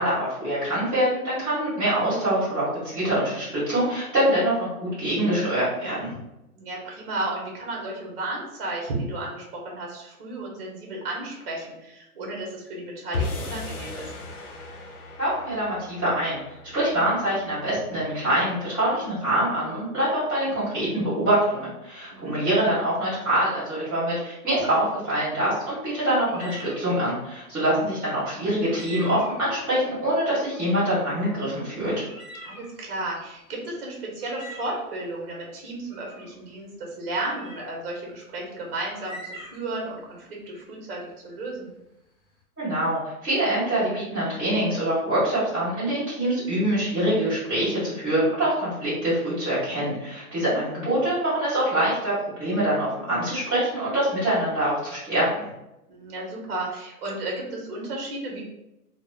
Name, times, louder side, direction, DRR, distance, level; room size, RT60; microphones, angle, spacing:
voice 1, 0.0-2.7 2.9-6.1 15.2-16.4 16.7-32.1 42.6-55.3, right 1 dB, ahead, -22 dB, 0.9 m, -24 dB
voice 2, 6.5-14.1 22.1-22.3 32.4-41.7 50.3-50.6 55.9-58.4, right 2 dB, 40° right, -1 dB, 0.7 m, -33 dB
sound 1, 13.1-19.5, left 3 dB, 75° left, 0.7 m, -37 dB
sound 2, 26.2-26.8 28.6-29.5 30.5-30.9 31.3-31.4 32.0-33.4 34.2-34.9 35.9-36.4 37.2-37.7 38.9-39.8, right 1 dB, 50° left, 0.9 m, -43 dB
3.1 x 2.0 x 2.3 m, 0.92 s
hypercardioid pair, 170°, 44 cm